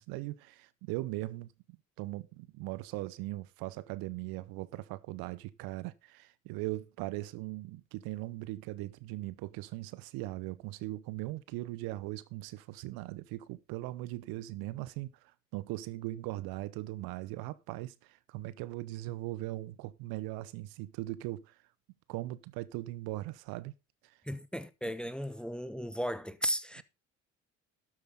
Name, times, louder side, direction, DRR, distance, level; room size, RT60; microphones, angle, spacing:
voice 1, 0.0-15.1 15.5-21.5 22.1-23.7 24.0-24.2, right 18 dB, 65° right, 0.9 m, -39 dB
voice 2, 24.2-26.8, equal, ahead, 0.9 m, -35 dB
12.5 x 8.1 x 3.9 m
hypercardioid pair, 55°, 39 cm